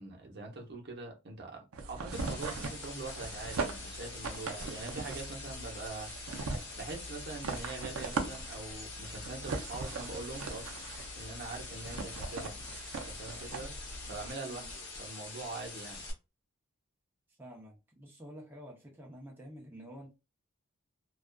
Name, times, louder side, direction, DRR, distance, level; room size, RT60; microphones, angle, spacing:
voice 1, 0.0-6.1 6.8-10.8 11.1-12.6 13.0-13.7 14.1-16.0, right 3 dB, 50° right, 0.8 m, -43 dB
sound 1, 1.7-14.3, right 3 dB, 80° right, 0.5 m, -40 dB
sound 2, 2.1-16.1, left 3 dB, 55° left, 0.9 m, -45 dB
voice 2, 14.4-14.7 17.4-20.1, equal, 10° right, 0.6 m, -49 dB
2.4 x 2.3 x 2.2 m
head